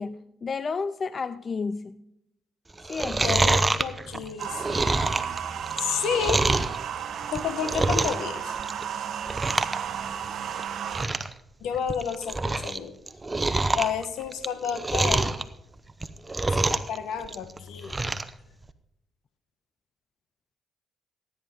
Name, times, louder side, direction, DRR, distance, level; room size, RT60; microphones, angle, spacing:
voice 1, 0.0-2.0 2.8-3.4, left 4 dB, 45° left, 15 dB, 0.4 m, -32 dB
Chewing mastication, 2.8-6.8 7.2-8.3 8.6-8.9 9.2-9.8 10.1-10.2 10.6-10.7 10.9-11.3 11.7-12.8 13.1-15.4 15.9-17.0 17.2-18.3 18.7-18.8, right 2 dB, 25° right, 0.8 m, -26 dB
voice 2, 3.2-5.0 5.8-6.5 7.3-8.6 11.6-12.9 13.7-15.4 16.7-18.0, left 7 dB, 75° left, 11 dB, 1.2 m, -31 dB
sound 1, 4.4-11.1, right 8 dB, 65° right, 0.9 m, -33 dB
16.0 x 9.3 x 3.7 m, 0.81 s
supercardioid pair, 55°, 0 cm